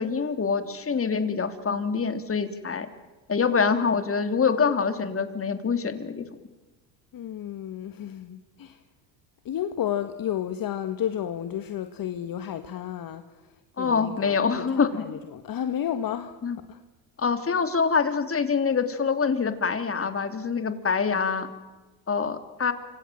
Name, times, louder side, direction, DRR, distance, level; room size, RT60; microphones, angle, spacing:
voice 1, 0.0-2.9 3.3-6.2 13.8-15.0 16.4-16.6 17.2-21.5 22.1-22.7, left 5 dB, 30° left, 9 dB, 3.3 m, -25 dB
voice 2, 7.1-8.8 9.4-13.2 13.8-16.3 16.7-16.8, left 10 dB, 50° left, 9 dB, 1.7 m, -32 dB
28.0 x 26.5 x 7.6 m, 1.2 s
supercardioid pair, 80°, 46 cm